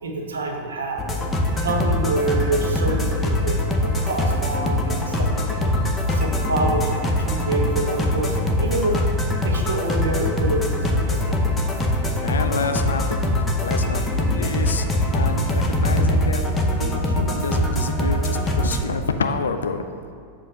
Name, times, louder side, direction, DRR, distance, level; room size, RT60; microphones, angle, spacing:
voice 1, 0.0-1.1 1.6-5.6 6.1-9.0 9.4-10.7 10.9-11.4 14.0-14.7, right 2 dB, 65° right, 1 dB, 0.8 m, -27 dB
sound 1, 1.0-18.8, left 1 dB, 15° left, 0.6 m, -22 dB
voice 2, 12.2-13.0 13.6-14.0 14.3-14.9 15.1-16.4 16.8-19.9, left 5 dB, 70° left, 8 dB, 0.4 m, -28 dB
7.2 x 2.5 x 5.4 m, 2.3 s
figure-of-eight pair, 90°, 0 cm